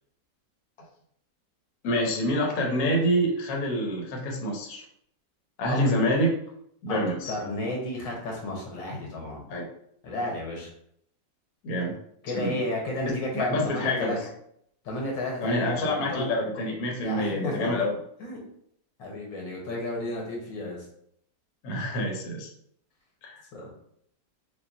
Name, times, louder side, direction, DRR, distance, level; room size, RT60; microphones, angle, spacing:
voice 1, 1.8-4.8 5.6-6.4 6.8-7.3 9.5-9.7 11.6-11.9 12.3-12.6 13.1-14.2 15.4-17.9 21.6-22.5 23.2-23.4, equal, 60° left, 0 dB, 1.3 m, -27 dB
voice 2, 7.3-9.4 10.0-10.7 12.2-14.2 14.8-16.3 17.0-17.8 18.2-18.4 19.0-20.8 23.5-23.7, left 1 dB, 90° left, -1 dB, 1.8 m, -32 dB
5.1 x 2.7 x 2.6 m, 0.68 s
omnidirectional pair, 1.9 m